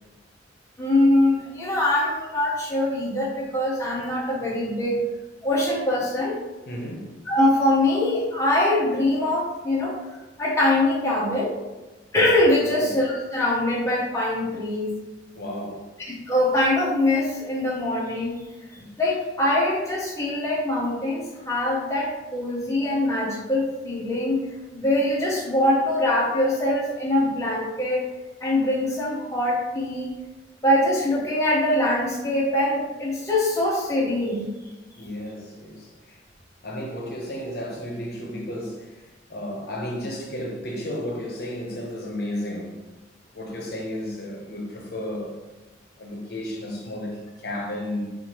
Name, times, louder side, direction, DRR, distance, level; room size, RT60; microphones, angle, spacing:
voice 1, 0.8-5.0 5.4-6.4 7.3-9.9 10.4-11.5 12.1-14.9 16.1-18.5 19.0-24.4 24.7-28.0 28.4-30.1 30.6-34.5, left 1 dB, 15° left, -5 dB, 0.6 m, -23 dB
voice 2, 6.7-7.1 12.7-13.0 15.3-15.9 18.8-18.9 35.0-36.2 36.6-39.0 39.3-42.7 43.3-45.4 46.0-48.0, left 1 dB, 60° left, -1 dB, 0.8 m, -33 dB
4.2 x 2.5 x 2.9 m, 1.1 s
head